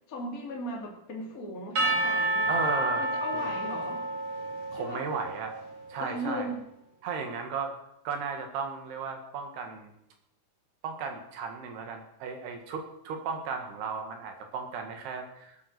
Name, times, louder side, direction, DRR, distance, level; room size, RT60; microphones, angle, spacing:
voice 1, 0.1-2.5 3.0-4.0 4.7-5.0 6.0-6.6, equal, 25° left, -2 dB, 2.7 m, -37 dB
Percussion / Church bell, 1.8-5.6, right 2 dB, 45° right, 3.2 m, -29 dB
voice 2, 2.5-3.0 3.3-3.5 4.7-5.6 5.9-6.5 7.0-7.8 8.1-9.9 10.8-15.6, right 5 dB, 75° right, 4 dB, 3.6 m, -35 dB
19.0 x 8.5 x 6.7 m, 0.81 s
omnidirectional pair, 4.9 m